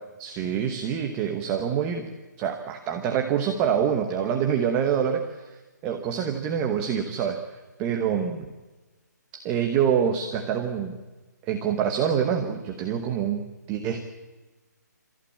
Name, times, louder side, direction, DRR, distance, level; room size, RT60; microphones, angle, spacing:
voice 1, 0.2-2.1 2.4-5.6 5.8-7.4 7.8-8.5 9.3-11.0 11.4-14.1, right 8 dB, 10° right, 4 dB, 1.0 m, -26 dB
30.0 x 14.5 x 8.6 m, 1.2 s
hypercardioid pair, 175°, 10 cm